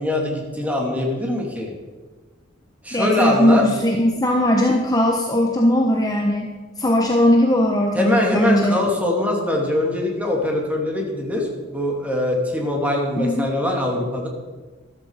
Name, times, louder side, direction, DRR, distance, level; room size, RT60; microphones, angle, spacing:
voice 1, 0.0-1.7 2.8-3.6 7.9-14.3, left 1 dB, 10° right, -1 dB, 3.0 m, -22 dB
voice 2, 2.9-8.8 13.2-13.5, left 1 dB, 20° left, 1 dB, 1.2 m, -19 dB
13.5 x 13.5 x 5.0 m, 1.3 s
head